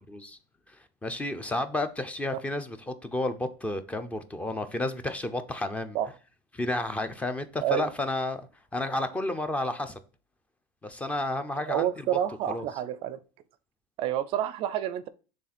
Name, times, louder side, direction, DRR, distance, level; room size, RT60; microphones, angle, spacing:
voice 1, 1.0-6.0 6.5-8.4 8.7-10.0 10.8-12.2 12.5-12.6, left 2 dB, 10° left, 0.6 m, -31 dB
voice 2, 11.5-13.2 14.0-15.1, right 11 dB, 50° right, 0.4 m, -29 dB
6.3 x 3.6 x 4.2 m
supercardioid pair, 135°, 12 cm